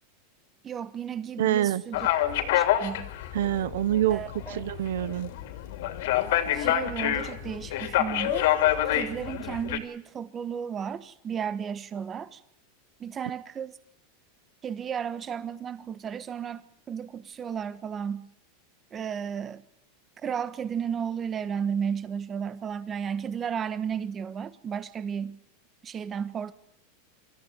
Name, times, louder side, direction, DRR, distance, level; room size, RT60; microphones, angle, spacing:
voice 1, 0.6-2.3 2.5-3.1 4.1-4.7 6.5-8.6 8.9-12.4 13.0-13.8 14.6-18.3 18.9-19.6 20.2-25.4 25.8-26.5, right 7 dB, 20° right, 1.3 m, -33 dB
voice 2, 1.4-1.8 3.3-4.2 4.5-5.3, right 12 dB, 80° right, 1.0 m, -25 dB
sound 1, 1.9-9.8, left 12 dB, 65° left, 3.0 m, -27 dB
26.0 x 14.5 x 9.2 m
supercardioid pair, 155°, 0 cm